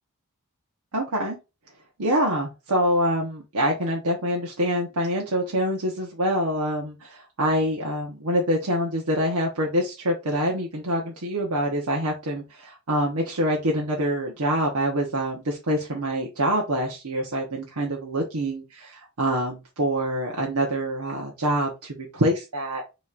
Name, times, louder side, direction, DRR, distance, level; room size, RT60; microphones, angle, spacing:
voice 1, 0.9-1.4 2.0-22.8, equal, 90° right, -1 dB, 1.0 m, -25 dB
6.3 x 3.1 x 2.5 m, 0.27 s
head